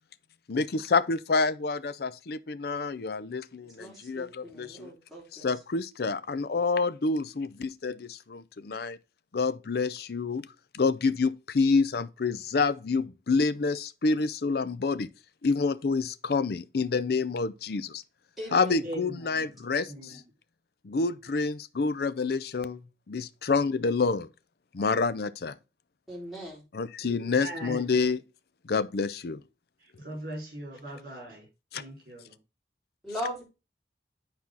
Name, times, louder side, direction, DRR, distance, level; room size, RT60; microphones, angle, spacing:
voice 1, 0.5-4.9 5.3-9.0 9.3-10.5 10.7-15.1 15.4-18.0 18.5-20.2 20.8-22.8 23.1-24.3 24.7-25.5 26.7-28.2 28.6-29.4 31.7-31.8, left 4 dB, 60° left, 0.5 m, -28 dB
voice 2, 3.8-5.5 18.4-18.8 26.1-26.6 33.0-33.4, equal, ahead, 3.8 m, -39 dB
voice 3, 18.8-19.4 19.8-20.2 27.2-28.1 30.0-31.5 31.7-32.3, right 1 dB, 50° right, 4.9 m, -40 dB
9.6 x 4.4 x 3.9 m
head